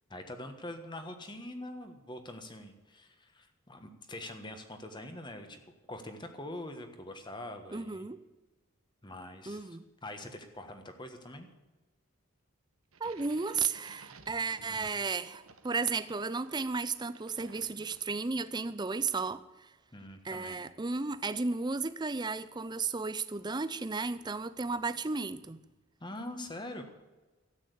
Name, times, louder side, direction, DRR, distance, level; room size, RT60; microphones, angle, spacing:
voice 1, 0.1-5.6 5.9-8.1 9.0-11.5 14.6-15.0 19.9-20.6 26.0-26.9, left 1 dB, 20° left, 1.4 m, -44 dB
voice 2, 7.7-8.2 9.5-9.8 13.0-19.7 20.2-25.6, right 4 dB, 20° right, 0.5 m, -34 dB
sound 1, 12.9-18.4, right 4 dB, 80° right, 1.2 m, -56 dB
13.0 x 8.9 x 8.2 m
head